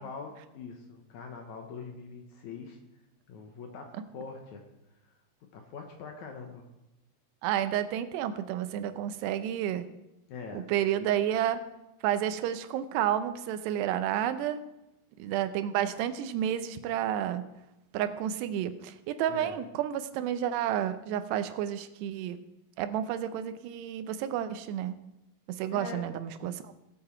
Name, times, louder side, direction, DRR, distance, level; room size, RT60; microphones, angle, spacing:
voice 1, 0.0-2.8 3.3-4.6 5.5-6.6 10.3-10.6 19.3-19.5 25.7-26.1, left 5 dB, 70° left, 4 dB, 1.8 m, -43 dB
voice 2, 7.4-9.9 10.5-11.6 12.0-14.6 15.2-17.5 17.9-22.4 22.8-25.0 25.5-26.7, right 10 dB, 85° right, 11 dB, 2.9 m, -30 dB
18.0 x 7.7 x 4.4 m, 0.93 s
omnidirectional pair, 4.7 m